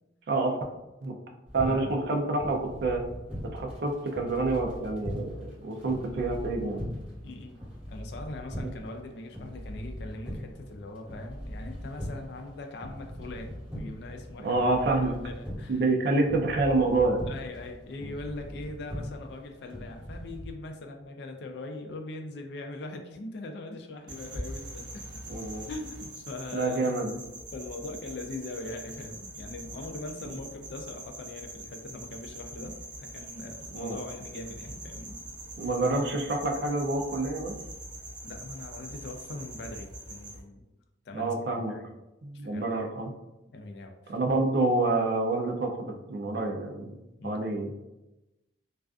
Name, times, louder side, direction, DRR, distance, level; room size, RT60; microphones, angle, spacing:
voice 1, 0.3-0.6 1.0-1.2 1.5-3.0 3.4-6.8 8.6-8.7 14.4-15.2 15.7-17.2 25.3-25.6 26.5-27.2 30.2-30.3 33.7-34.0 35.6-37.5 41.1-41.7 42.2-43.1 44.1-47.0 47.2-47.7, right 2 dB, 55° right, 2 dB, 0.4 m, -27 dB
sound 1, 1.5-20.5, equal, 5° right, 1.2 m, -41 dB
voice 2, 1.6-2.0 7.2-14.6 15.0-15.8 17.3-25.0 25.7-27.0 27.5-35.2 38.2-40.7 41.1-41.9 42.3-42.8 43.5-44.2 47.2-47.4, left 2 dB, 60° left, 4 dB, 0.4 m, -41 dB
sound 2, 24.1-40.4, right 1 dB, 25° right, 0.8 m, -43 dB
2.4 x 2.3 x 2.3 m, 0.97 s
head